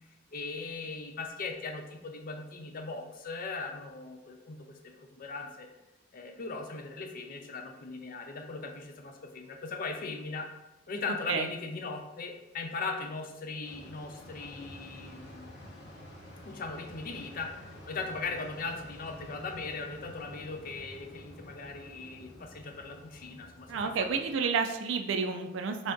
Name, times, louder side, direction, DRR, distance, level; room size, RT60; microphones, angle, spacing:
voice 1, 0.3-5.7 6.1-10.5 10.9-15.5 16.4-24.1 24.4-24.5, left 4 dB, 50° left, 4 dB, 0.5 m, -39 dB
sound 1, 13.6-24.4, left 1 dB, 65° left, 0.9 m, -50 dB
voice 2, 23.7-25.9, right 5 dB, 75° right, 4 dB, 0.4 m, -30 dB
3.3 x 2.6 x 3.6 m, 0.97 s
head